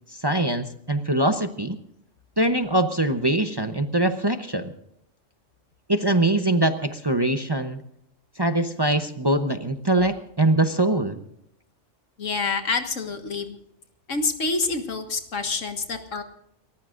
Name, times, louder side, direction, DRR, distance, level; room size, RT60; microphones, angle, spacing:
voice 1, 0.2-1.8 2.4-4.7 5.9-7.8 8.4-11.2, right 1 dB, 25° right, 7 dB, 0.8 m, -23 dB
voice 2, 12.2-13.6 14.1-16.2, left 4 dB, 80° left, 6 dB, 1.9 m, -27 dB
30.0 x 14.0 x 2.6 m, 0.74 s
omnidirectional pair, 1.3 m